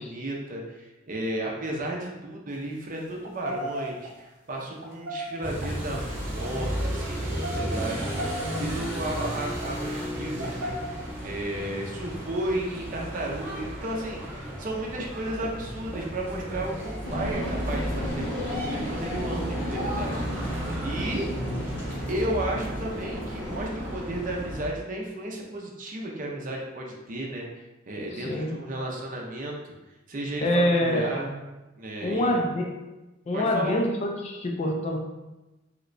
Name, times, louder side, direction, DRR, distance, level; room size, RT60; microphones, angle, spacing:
voice 1, 0.0-21.3 22.1-29.7 30.1-31.3 31.8-32.3 33.3-33.8, right 1 dB, 45° right, -1 dB, 0.5 m, -33 dB
sound 1, 2.5-2.6 3.1-4.1 4.7-5.7 6.3-6.5 7.0-8.9 9.5-9.7 10.3-10.9, equal, 85° right, 0.7 m, -35 dB
sound 2, 5.4-24.7, equal, 10° right, 1.0 m, -34 dB
sound 3, 17.0-24.4, left 1 dB, 75° left, 0.7 m, -35 dB
voice 2, 21.4-21.8 28.2-28.5 30.4-31.4 32.0-32.7 33.3-35.0, left 1 dB, 35° left, 1 dB, 0.4 m, -26 dB
3.2 x 2.9 x 2.5 m, 1.0 s
head